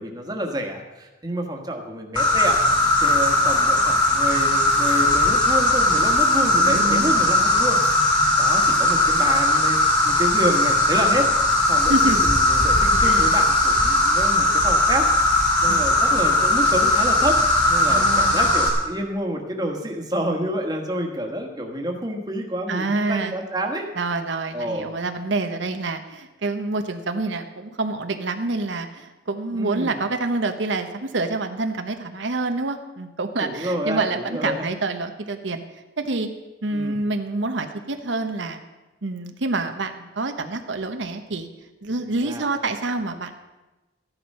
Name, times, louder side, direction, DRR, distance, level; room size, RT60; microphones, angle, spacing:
voice 1, 0.0-2.6 3.0-7.8 8.1-9.8 10.0-11.3 11.7-15.1 15.6-23.9 24.5-24.9 29.5-30.0 33.4-34.7 36.7-37.0 42.2-42.4, right 1 dB, 20° right, 2 dB, 1.5 m, -28 dB
Insect, 2.2-18.7, left 1 dB, 25° left, 2.6 m, -19 dB
voice 2, 6.6-7.2 11.9-12.2 13.0-13.4 15.7-15.9 17.9-18.6 22.7-23.4 23.9-35.6 36.0-36.3 36.6-38.6 39.0-41.5 41.8-43.3, right 3 dB, 80° right, 6 dB, 0.9 m, -27 dB
14.0 x 11.0 x 5.5 m, 1.1 s
head